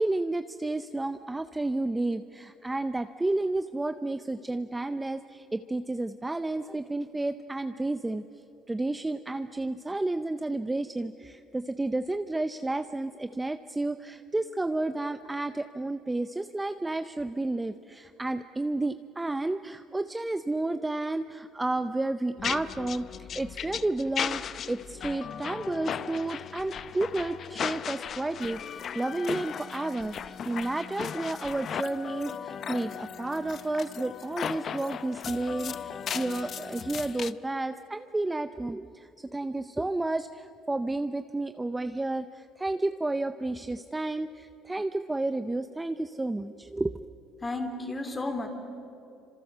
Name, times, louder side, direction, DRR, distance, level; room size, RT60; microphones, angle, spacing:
voice 1, 0.0-8.2 8.7-46.9, right 2 dB, 10° right, 10 dB, 0.6 m, -31 dB
sound 1, 22.4-37.3, left 8 dB, 45° left, 0.6 m, -36 dB
voice 2, 47.4-48.5, left 2 dB, 15° left, 6 dB, 3.0 m, -32 dB
28.0 x 26.0 x 6.7 m, 2.8 s
cardioid pair, 140°, 0 cm